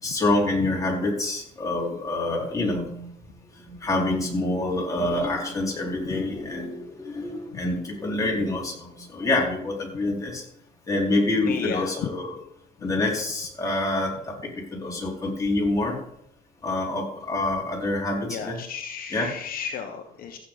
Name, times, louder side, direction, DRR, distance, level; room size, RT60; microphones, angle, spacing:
voice 1, 0.0-3.1 3.6-10.4 10.9-12.4 12.8-14.3 14.7-16.0 16.6-18.6 19.1-19.3, left 2 dB, 20° left, -3 dB, 4.3 m, -26 dB
voice 2, 11.5-11.9 18.2-20.4, left 7 dB, 60° left, 4 dB, 1.1 m, -34 dB
15.0 x 8.3 x 4.0 m, 0.74 s
cardioid pair, 110°, 17 cm